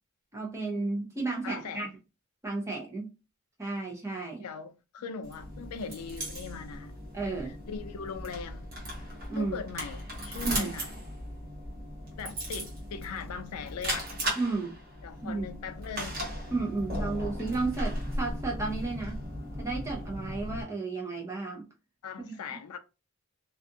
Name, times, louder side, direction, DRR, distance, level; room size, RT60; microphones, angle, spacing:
voice 1, 0.3-1.9 2.4-3.1 3.6-4.4 7.1-7.6 9.3-9.6 10.4-10.7 14.3-14.8 15.2-15.4 16.5-19.2 19.6-21.7 22.2-22.4, right 3 dB, 15° right, 0.6 m, -33 dB
voice 2, 1.4-1.9 4.4-6.9 7.7-8.7 9.4-10.9 12.2-14.1 15.0-16.2 22.0-22.8, left 6 dB, 90° left, 0.4 m, -40 dB
sound 1, 5.2-20.6, equal, 40° right, 1.0 m, -37 dB
2.5 x 2.4 x 2.6 m
head